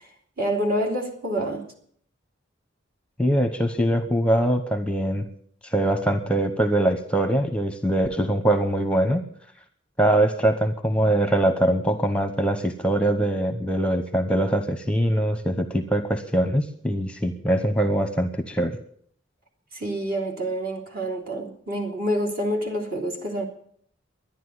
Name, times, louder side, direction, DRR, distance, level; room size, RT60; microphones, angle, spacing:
voice 1, 0.4-1.6 19.7-23.4, right 1 dB, 50° right, 3.3 m, -27 dB
voice 2, 3.2-5.3 5.6-9.2 10.0-18.8, right 1 dB, 5° left, 0.9 m, -23 dB
12.0 x 10.5 x 9.5 m
head